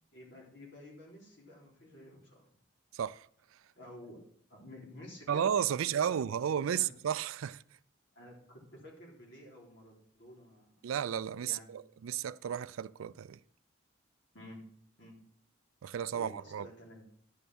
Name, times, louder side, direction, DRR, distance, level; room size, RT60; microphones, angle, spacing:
voice 1, 0.1-2.5 3.8-5.7 6.1-6.2 6.4-6.9 8.1-10.8 11.4-11.7 14.3-14.7 15.0-15.3 16.1-17.1, left 1 dB, 60° left, 3.5 m, -52 dB
voice 2, 2.9-3.3 5.3-7.6 10.8-13.4 15.8-16.7, right 8 dB, 90° right, 0.4 m, -33 dB
11.0 x 5.4 x 6.0 m
head